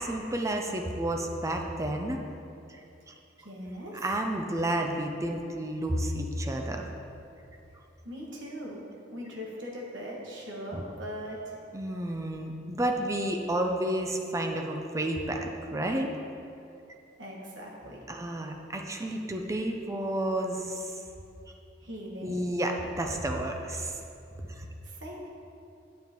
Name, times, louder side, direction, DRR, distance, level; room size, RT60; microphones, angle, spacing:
voice 1, 0.0-2.2 3.1-3.2 3.9-6.9 10.7-10.8 11.7-16.1 18.1-21.0 22.2-24.0 24.5-24.7, right 1 dB, 15° right, 3 dB, 0.5 m, -31 dB
voice 2, 3.4-4.0 8.0-8.8 9.1-11.6 17.2-18.0 21.8-22.4 24.8-25.3, equal, 80° right, -3 dB, 1.5 m, -40 dB
9.0 x 7.3 x 3.0 m, 2.7 s
head